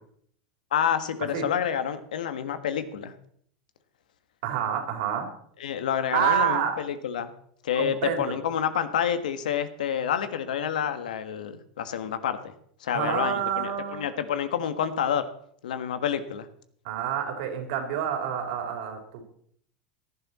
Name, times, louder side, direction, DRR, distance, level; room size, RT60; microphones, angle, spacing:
voice 1, 0.7-3.1 5.6-7.3 7.6-12.5 12.8-15.2 15.6-16.5, left 8 dB, 85° left, 11 dB, 1.5 m, -28 dB
voice 2, 4.4-5.3 6.1-6.8 7.8-8.4 12.9-14.0 16.8-19.2, right 9 dB, 70° right, 3 dB, 3.8 m, -28 dB
17.5 x 11.0 x 4.2 m, 0.64 s
hypercardioid pair, 100°, 4 cm